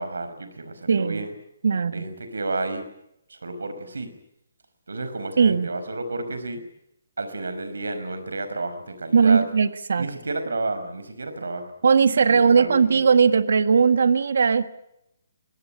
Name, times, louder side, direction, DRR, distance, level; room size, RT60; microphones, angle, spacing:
voice 1, 0.0-1.3 1.9-2.8 3.3-4.1 4.9-6.6 7.2-9.4 10.0-11.7 12.2-13.0, right 2 dB, 90° right, 9 dB, 4.9 m, -31 dB
voice 2, 0.9-1.2 1.6-2.0 5.4-5.7 9.1-10.1 11.8-14.7, right 5 dB, 75° right, 12 dB, 1.5 m, -18 dB
23.0 x 18.5 x 10.0 m, 0.82 s
hypercardioid pair, 155°, 0 cm